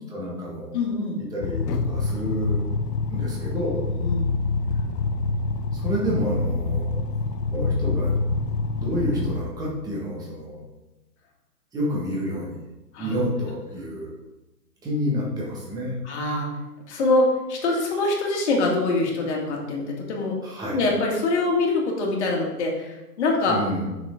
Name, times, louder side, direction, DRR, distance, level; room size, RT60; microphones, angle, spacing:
voice 1, 0.1-0.7 1.3-2.6 3.1-3.8 5.7-7.0 7.5-8.2 8.6-10.6 11.7-12.6 13.0-14.1 14.8-16.0 20.4-20.8 23.5-23.9, equal, 5° right, -4 dB, 1.3 m, -29 dB
voice 2, 0.7-1.2 4.0-4.4 12.9-13.2 16.0-16.6 16.9-20.4 20.7-23.6, left 2 dB, 45° left, -1 dB, 2.1 m, -24 dB
sound 1, 1.4-9.4, left 3 dB, 70° left, 0.9 m, -26 dB
8.0 x 6.2 x 3.7 m, 1.0 s
hypercardioid pair, 155°, 49 cm